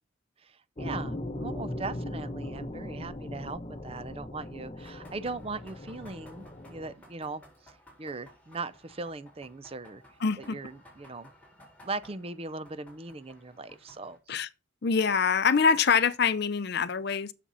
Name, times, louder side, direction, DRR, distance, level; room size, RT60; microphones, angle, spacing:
voice 1, 0.4-7.7 8.0-10.0 10.4-11.3 11.8-14.2, right 3 dB, 30° right, 0.5 m, -39 dB
sound 1, 0.8-6.9, left 1 dB, 30° left, 1.0 m, -39 dB
sound 2, 4.8-14.2, equal, 5° left, 4.1 m, -56 dB
voice 2, 10.2-10.6 14.3-14.5 14.8-17.3, left 5 dB, 50° left, 0.6 m, -25 dB
7.5 x 6.9 x 5.5 m
head